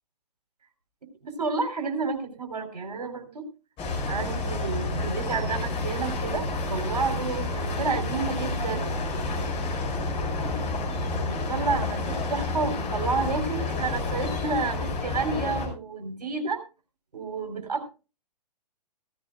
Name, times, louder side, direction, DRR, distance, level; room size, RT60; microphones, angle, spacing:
voice 1, 1.2-3.5 4.1-8.9 11.3-16.6 17.1-17.9, right 4 dB, 65° right, 5 dB, 3.5 m, -30 dB
sound 1, 3.8-15.7, left 2 dB, 25° left, 5.8 m, -29 dB
16.0 x 15.5 x 2.3 m, 0.31 s
figure-of-eight pair, 115°, 21 cm